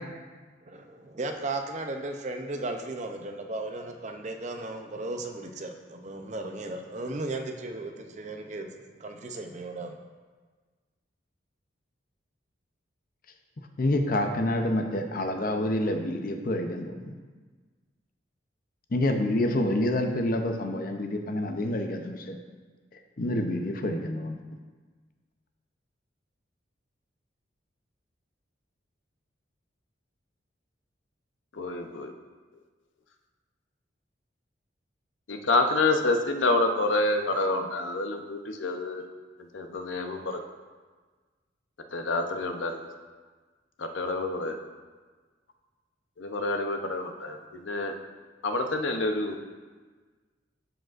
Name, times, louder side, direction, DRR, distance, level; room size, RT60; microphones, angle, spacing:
voice 1, 0.7-10.0, right 2 dB, 40° right, 4 dB, 0.5 m, -36 dB
voice 2, 13.8-17.1 18.9-22.4 23.2-24.4, left 1 dB, 50° left, 5 dB, 0.6 m, -27 dB
voice 3, 31.6-32.1 35.3-39.0 39.5-40.2 41.9-42.8 43.8-44.5 46.2-47.4 47.6-47.9 48.4-49.4, left 2 dB, 85° left, 5 dB, 0.7 m, -27 dB
13.5 x 5.0 x 2.5 m, 1.4 s
head